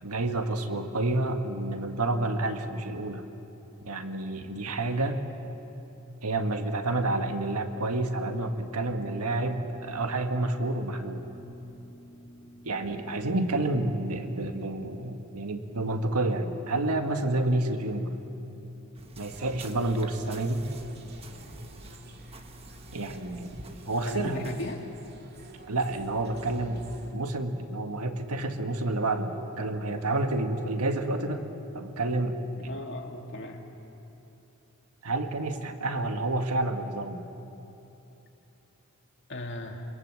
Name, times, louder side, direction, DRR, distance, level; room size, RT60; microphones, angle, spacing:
voice 1, 0.0-3.2 3.8-5.2 6.2-11.2 12.6-18.1 19.2-20.7 22.9-23.5 23.9-24.5 25.7-31.5 31.7-32.7 35.0-37.2, right 2 dB, 85° right, 5 dB, 1.7 m, -29 dB
sound 1, 7.9-14.3, equal, 20° left, 3.0 m, -52 dB
sound 2, 19.0-24.6, right 1 dB, 25° right, 1.3 m, -48 dB
sound 3, 19.2-27.1, right 2 dB, 45° right, 2.2 m, -51 dB
voice 2, 24.0-24.8 32.6-33.6 39.3-39.8, left 1 dB, 55° left, 2 dB, 2.2 m, -37 dB
27.0 x 23.5 x 7.7 m, 3.0 s
head